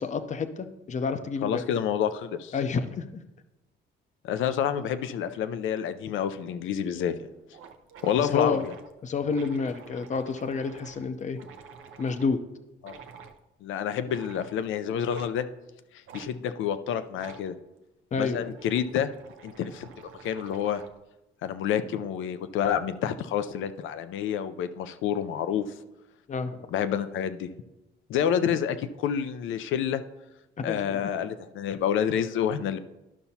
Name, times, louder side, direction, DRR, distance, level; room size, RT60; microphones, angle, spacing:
voice 1, 0.0-1.6 2.5-3.0 8.2-8.7 9.0-11.4 12.0-12.4 18.1-18.5 26.3-26.7 30.7-31.2, left 5 dB, 35° left, 10 dB, 0.6 m, -29 dB
voice 2, 1.4-2.5 4.2-7.1 8.0-8.7 12.8-12.9 13.6-15.5 16.1-17.5 18.2-19.1 19.4-20.8 21.4-25.7 26.7-27.5 28.1-30.0 30.6-32.8, left 9 dB, 80° left, 12 dB, 0.5 m, -28 dB
sound 1, 6.9-7.0 7.2-7.3 7.5-12.3 12.8-13.4 14.0-14.6 15.1-15.3 16.1-16.3 17.1-17.5 18.2-21.0, right 6 dB, 80° right, 0.6 m, -48 dB
12.0 x 5.7 x 2.8 m, 0.96 s
cardioid pair, 90°, 20 cm